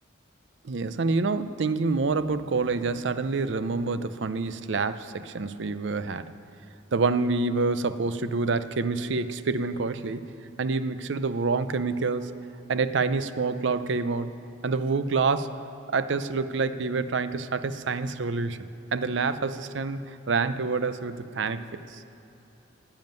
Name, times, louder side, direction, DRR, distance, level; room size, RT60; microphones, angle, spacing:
voice 1, 0.6-6.3 6.9-10.3 10.6-12.4 12.7-14.3 14.6-15.6 15.9-18.6 18.9-21.6 21.9-22.0, right 4 dB, 70° right, 12 dB, 0.5 m, -27 dB
10.5 x 7.1 x 9.1 m, 3.0 s
head